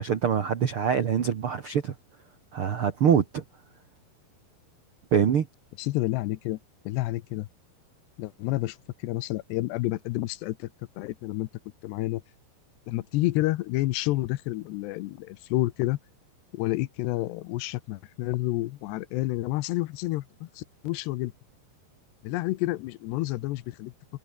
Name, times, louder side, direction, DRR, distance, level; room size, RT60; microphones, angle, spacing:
voice 1, 0.0-1.9 2.5-3.4 5.1-5.5, right 8 dB, 70° right, 1.3 m, -24 dB
voice 2, 5.8-6.6 6.9-7.5 8.2-8.8 9.0-10.7 11.0-11.5 11.8-12.2 12.9-16.0 16.5-21.3 22.2-23.9, left 18 dB, 85° left, 3.0 m, -29 dB
omnidirectional pair, 4.8 m